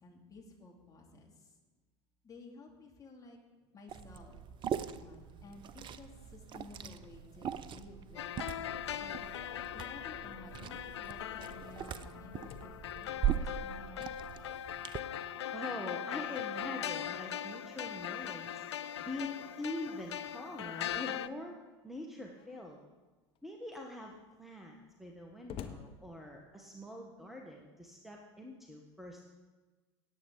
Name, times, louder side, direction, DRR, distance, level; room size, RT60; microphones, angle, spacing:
voice 1, 0.0-1.5 2.2-3.4 3.7-4.4 4.7-9.2 9.7-14.1, left 3 dB, 25° left, 0 dB, 2.7 m, -54 dB
Liquid, 3.9-15.0, right 9 dB, 35° right, 0.6 m, -40 dB
sound 1, 8.1-21.3, left 10 dB, 70° left, 0.4 m, -40 dB
Slam, 12.3-14.8 15.2-15.3 15.7-21.4 22.3-22.8 23.4-23.5 23.7-26.8, left 8 dB, 40° left, 1.0 m, -55 dB
voice 2, 15.5-18.6 19.0-21.5 21.8-22.8 23.4-24.1 24.4-29.3, left 1 dB, ahead, 1 dB, 1.4 m, -44 dB
17.5 x 8.4 x 4.0 m, 1.3 s
figure-of-eight pair, 75°, 15 cm